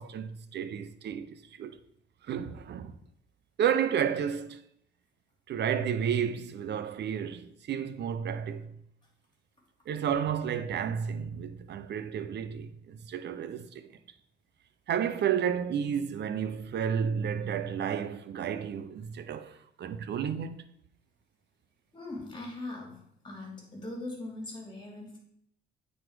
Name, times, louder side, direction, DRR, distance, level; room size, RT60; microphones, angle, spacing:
voice 1, 0.0-1.8 2.2-2.9 3.6-4.6 5.5-8.7 9.9-13.9 14.9-20.6, right 8 dB, 60° right, 0.7 m, -31 dB
voice 2, 21.9-25.2, left 2 dB, 25° left, 2.8 m, -40 dB
8.9 x 4.2 x 4.7 m
cardioid pair, 90°, 20 cm